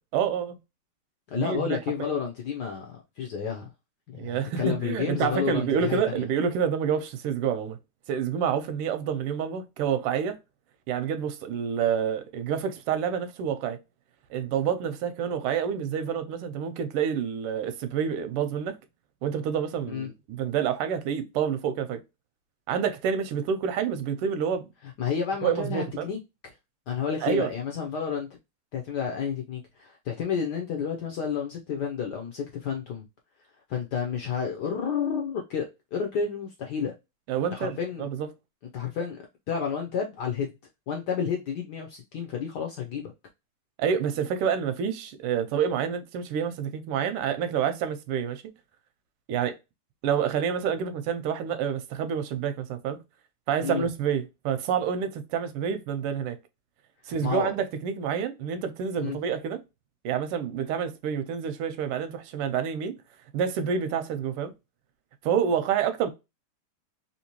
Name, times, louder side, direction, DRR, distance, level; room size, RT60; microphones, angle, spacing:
voice 1, 0.1-0.6 1.3-2.1 4.2-7.8 8.1-10.4 10.9-13.8 14.3-18.8 19.2-22.0 22.7-24.7 25.4-26.1 27.2-27.5 37.3-38.3 43.8-48.4 49.3-49.6 50.0-53.0 53.5-56.4 57.1-59.6 60.0-63.0 63.3-64.5 65.2-66.1, right 7 dB, 90° right, 1.5 m, -28 dB
voice 2, 1.3-3.7 4.1-6.2 19.9-20.1 25.0-26.2 26.4-26.5 26.9-28.3 28.7-33.0 33.7-35.7 35.9-36.9 37.5-38.1 38.7-39.2 39.5-40.5 40.9-43.0 53.6-53.8 57.0-57.5 59.0-59.2, left 7 dB, 75° left, 0.9 m, -30 dB
3.6 x 2.8 x 2.8 m
omnidirectional pair, 2.4 m